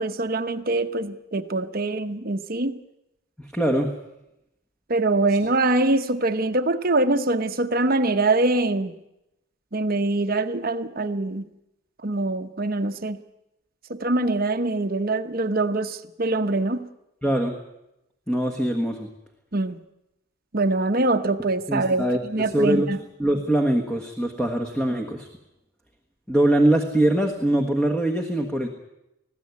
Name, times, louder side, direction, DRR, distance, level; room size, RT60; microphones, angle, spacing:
voice 1, 0.0-2.8 4.9-8.9 9.7-11.4 12.0-13.2 13.9-16.9 19.5-19.8 20.5-23.0, right 2 dB, 45° right, 8 dB, 1.0 m, -24 dB
voice 2, 3.4-3.9 5.3-5.4 17.2-17.5 18.3-19.1 21.7-22.9 23.2-25.3 26.3-28.7, right 1 dB, 5° left, 3 dB, 1.5 m, -23 dB
20.0 x 15.5 x 9.6 m, 0.89 s
head